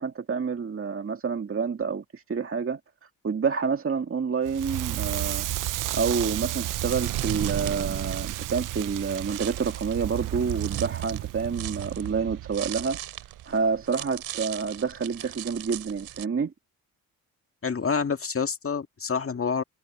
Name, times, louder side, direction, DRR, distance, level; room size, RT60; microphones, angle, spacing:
voice 1, 0.0-2.8 3.2-5.5 5.9-13.0 13.5-16.5, right 5 dB, 35° right, 2.0 m, -28 dB
Crackle, 4.5-13.4, right 15 dB, 60° right, 0.5 m, -32 dB
sound 1, 6.6-16.3, right 12 dB, 80° right, 5.9 m, -41 dB
voice 2, 17.6-19.6, left 5 dB, 40° left, 1.9 m, -27 dB
supercardioid pair, 60°, 36 cm